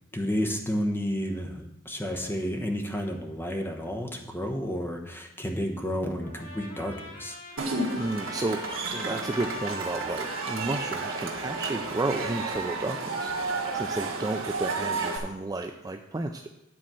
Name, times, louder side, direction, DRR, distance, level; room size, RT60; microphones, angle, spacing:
voice 1, 0.1-7.4, equal, 10° left, 3 dB, 1.1 m, -31 dB
Trumpet, 6.2-13.4, left 3 dB, 80° left, 3.5 m, -44 dB
voice 2, 7.5-8.6 8.9-16.5, right 2 dB, 20° right, 5 dB, 0.4 m, -32 dB
Cheering / Crowd, 7.6-15.2, right 3 dB, 75° right, 1.7 m, -32 dB
10.0 x 4.2 x 7.6 m, 0.88 s
head